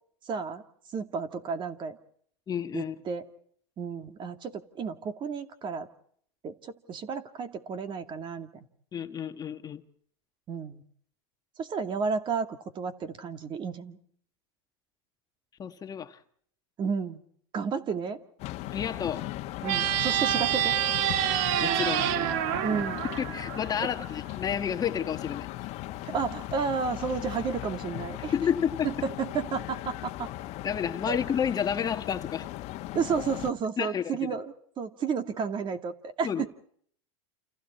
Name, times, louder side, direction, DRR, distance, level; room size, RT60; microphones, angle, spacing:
voice 1, 0.2-0.6 0.9-2.0 2.7-3.2 3.8-5.9 6.4-8.7 10.5-10.8 11.6-14.0 16.8-17.2 17.5-18.2 19.6-20.7 22.6-23.0 26.1-28.3 28.8-30.3 31.1-31.2 32.9-36.5, right 5 dB, 35° right, 2.3 m, -32 dB
voice 2, 2.5-2.9 8.9-9.8 15.6-16.2 18.7-19.3 21.6-22.1 23.2-25.5 28.3-29.1 30.6-32.5 33.8-34.4 36.2-36.4, left 8 dB, 25° left, 1.5 m, -30 dB
sound 1, 18.4-33.5, left 15 dB, 50° left, 1.5 m, -38 dB
sound 2, 19.6-24.1, right 12 dB, 55° right, 1.3 m, -27 dB
29.0 x 28.5 x 4.4 m
hypercardioid pair, 115°, 15 cm